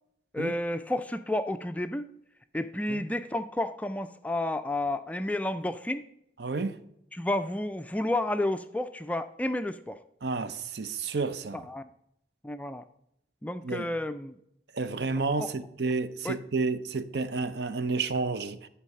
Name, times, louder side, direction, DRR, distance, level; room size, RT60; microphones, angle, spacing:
voice 1, 0.3-2.0 2.5-6.0 7.1-10.0 11.5-11.9 12.4-12.8 13.4-14.4 15.4-15.5 16.2-16.4, left 1 dB, 10° left, 0.3 m, -31 dB
voice 2, 6.4-6.8 10.2-11.6 13.6-13.9 14.7-18.7, right 4 dB, 70° right, 0.6 m, -30 dB
11.5 x 4.7 x 6.6 m
head